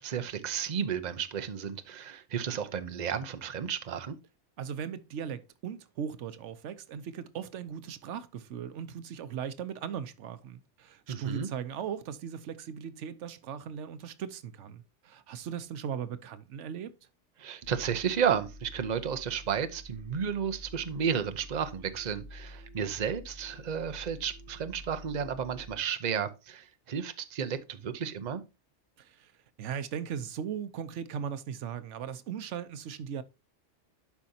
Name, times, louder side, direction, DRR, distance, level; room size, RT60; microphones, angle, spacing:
voice 1, 0.0-4.2 11.1-11.5 17.4-28.4, right 7 dB, 40° right, 0.8 m, -32 dB
voice 2, 4.6-16.9 29.0-29.3 29.6-33.2, right 8 dB, 90° right, 1.0 m, -38 dB
sound 1, 17.6-25.8, equal, 55° left, 1.0 m, -49 dB
11.5 x 5.1 x 2.8 m
omnidirectional pair, 1.2 m